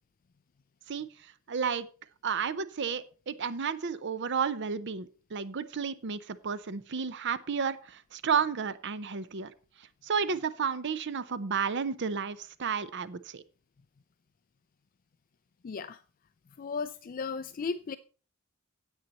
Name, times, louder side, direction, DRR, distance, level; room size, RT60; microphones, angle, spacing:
voice 1, 0.9-1.9 2.2-9.5 9.8-13.4, right 6 dB, 55° right, 15 dB, 0.7 m, -32 dB
voice 2, 15.6-16.0 16.6-18.0, left 5 dB, 40° left, 13 dB, 0.4 m, -35 dB
9.6 x 8.4 x 4.1 m, 0.37 s
head